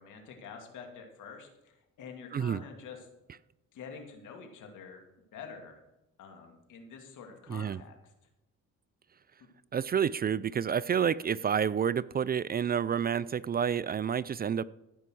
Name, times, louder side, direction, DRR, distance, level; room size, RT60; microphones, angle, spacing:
voice 1, 0.0-3.1 3.7-5.8 6.2-8.0, left 6 dB, 80° left, 3 dB, 2.4 m, -47 dB
voice 2, 7.5-7.8 9.7-14.6, right 8 dB, 30° right, 18 dB, 0.4 m, -29 dB
15.0 x 5.7 x 6.2 m, 0.95 s
cardioid pair, 90°, 30 cm